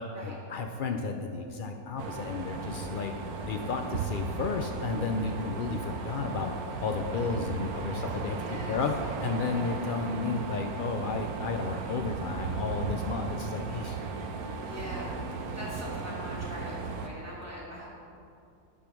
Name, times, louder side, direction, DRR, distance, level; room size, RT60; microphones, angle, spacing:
voice 1, 0.0-3.1 3.4-6.5 6.8-8.4 8.7-14.0, left 4 dB, 90° left, 5 dB, 0.4 m, -32 dB
sound 1, 2.0-17.1, right 4 dB, 85° right, 1.2 m, -36 dB
voice 2, 8.1-8.8 14.6-17.9, equal, 10° right, -7 dB, 2.4 m, -42 dB
9.0 x 6.9 x 6.0 m, 2.5 s
omnidirectional pair, 1.6 m